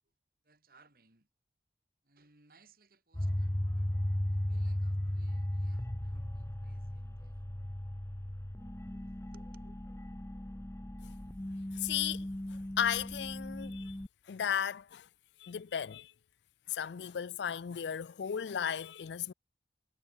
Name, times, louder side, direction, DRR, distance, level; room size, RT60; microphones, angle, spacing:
voice 1, 0.4-1.3 2.0-3.9 4.3-7.4 8.9-9.7, right 3 dB, 55° right, 4.2 m, -66 dB
sound 1, 3.1-14.1, left 1 dB, 15° left, 0.7 m, -36 dB
voice 2, 11.7-13.9 14.3-15.1 15.4-16.1 16.7-19.3, left 8 dB, 80° left, 0.4 m, -35 dB
head